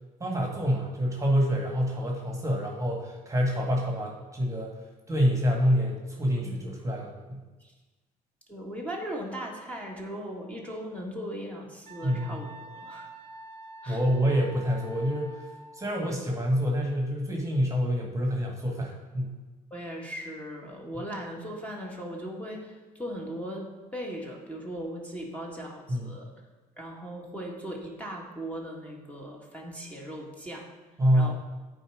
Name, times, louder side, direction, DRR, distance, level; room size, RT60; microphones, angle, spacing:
voice 1, 0.2-4.7 5.1-7.4 12.0-12.5 13.9-15.5 15.8-19.3 25.9-26.1 31.0-31.3, equal, 15° right, 0 dB, 1.6 m, -27 dB
voice 2, 8.5-13.1 13.8-14.0 15.9-16.1 19.7-26.3 26.8-30.7 31.1-31.3, equal, 5° left, -1 dB, 1.7 m, -38 dB
Wind instrument woodwind instrument, 11.8-15.9, right 1 dB, 35° right, 1.1 m, -46 dB
8.9 x 4.3 x 5.0 m, 1.2 s
hypercardioid pair, 60°, 19 cm